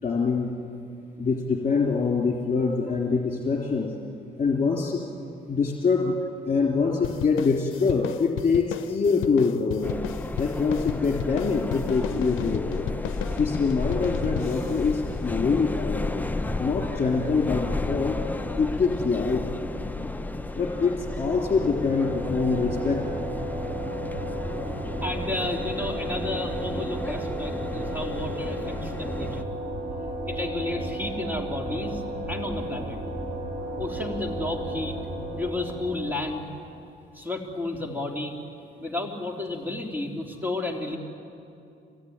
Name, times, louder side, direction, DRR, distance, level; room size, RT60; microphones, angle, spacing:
voice 1, 0.0-0.5 1.2-3.9 4.4-5.0 5.5-6.2 6.4-10.0 10.4-12.9 13.4-16.2 16.6-18.2 18.6-19.5 20.6-23.1, left 4 dB, 35° left, -1 dB, 3.3 m, -24 dB
sound 1, 7.0-15.9, left 12 dB, 80° left, 0.6 m, -36 dB
sound 2, 9.8-29.4, left 2 dB, 10° left, 0.7 m, -33 dB
sound 3, 20.8-36.6, right 1 dB, 35° right, 5.7 m, -34 dB
voice 2, 25.0-29.5 30.2-32.0 32.3-33.0 33.8-35.0 35.3-36.4 37.1-38.3 38.8-41.0, left 2 dB, 10° right, 1 dB, 3.3 m, -32 dB
25.5 x 18.0 x 9.7 m, 2.5 s
cardioid pair, 90°, 20 cm